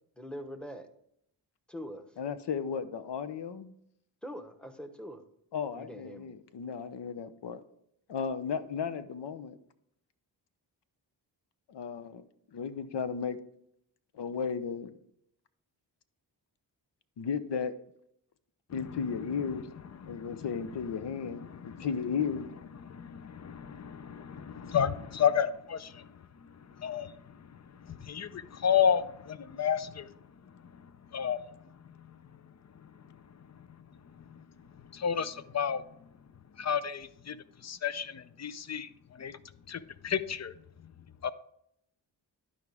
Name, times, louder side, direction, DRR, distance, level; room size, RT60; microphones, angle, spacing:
voice 1, 0.2-0.9 1.7-2.2 4.2-5.2 5.7-6.3, equal, ahead, 7 dB, 1.0 m, -43 dB
voice 2, 2.2-3.7 5.5-7.6 8.1-9.6 11.7-12.2 12.5-13.4 14.1-14.9 17.2-17.7 18.7-19.7 20.1-22.5, left 6 dB, 60° left, 12 dB, 0.8 m, -34 dB
voice 3, 18.7-19.5 20.0-20.5 21.4-21.9 22.7-30.1 30.5-31.6 31.8-32.4 32.7-33.2 33.5-33.7 34.1-34.4 34.8-36.1 36.6-37.4 37.6-39.4 39.7-40.5 40.8-40.9 41.2-41.3, left 8 dB, 35° left, 15 dB, 0.5 m, -33 dB
11.5 x 4.9 x 3.5 m, 0.73 s
cardioid pair, 50°, 47 cm